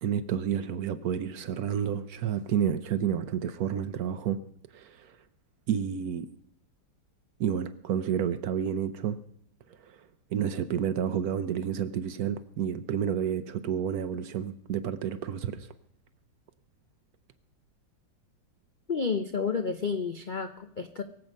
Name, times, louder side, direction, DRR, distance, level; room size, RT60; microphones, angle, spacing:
voice 1, 0.0-4.4 4.7-5.2 5.7-6.3 7.4-9.2 9.8-10.0 10.3-15.7, right 9 dB, 65° right, 1.0 m, -30 dB
voice 2, 18.9-21.0, left 5 dB, 80° left, 0.4 m, -30 dB
23.5 x 7.8 x 5.3 m
omnidirectional pair, 2.0 m